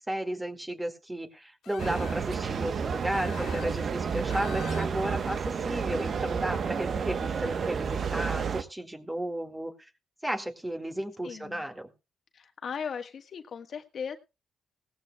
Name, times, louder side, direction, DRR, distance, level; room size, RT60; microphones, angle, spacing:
voice 1, 0.1-9.7 10.2-11.9, right 1 dB, 10° right, 6 dB, 2.0 m, -34 dB
sound 1, 1.6-2.3 3.1-3.8 4.3-5.1, left 8 dB, 85° left, 2.4 m, -43 dB
sound 2, 1.8-8.6, right 6 dB, 55° right, 1.0 m, -31 dB
voice 2, 3.6-3.9 11.2-11.6 12.3-14.2, left 6 dB, 60° left, 6 dB, 1.4 m, -38 dB
18.0 x 14.5 x 2.3 m, 0.29 s
cardioid pair, 80°, 0 cm